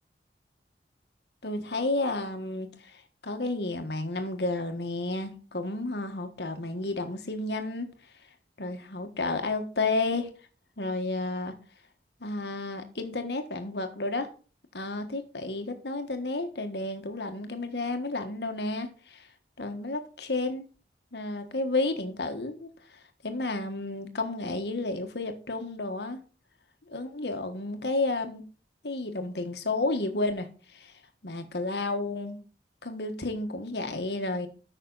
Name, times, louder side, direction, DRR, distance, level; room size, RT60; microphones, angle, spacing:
voice 1, 1.4-7.9 8.6-10.3 10.8-11.5 12.2-14.3 14.7-19.3 19.6-20.7 21.1-26.2 26.9-28.4 28.8-30.5 30.7-30.9 31.2-32.4 32.8-34.5, left 2 dB, 75° left, 1.5 m, -31 dB
13.5 x 5.9 x 4.0 m
head